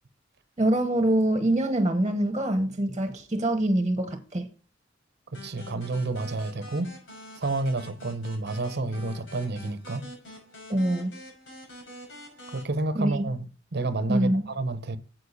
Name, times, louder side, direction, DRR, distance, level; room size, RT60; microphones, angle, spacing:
voice 1, 0.6-4.5 10.7-11.1 12.9-13.2 14.1-14.4, right 1 dB, 25° right, 1.3 m, -24 dB
sound 1, 5.3-12.6, left 1 dB, 80° left, 5.8 m, -46 dB
voice 2, 5.3-6.9 7.4-10.0 12.5-15.0, right 2 dB, 60° right, 0.9 m, -30 dB
9.7 x 7.7 x 4.1 m
head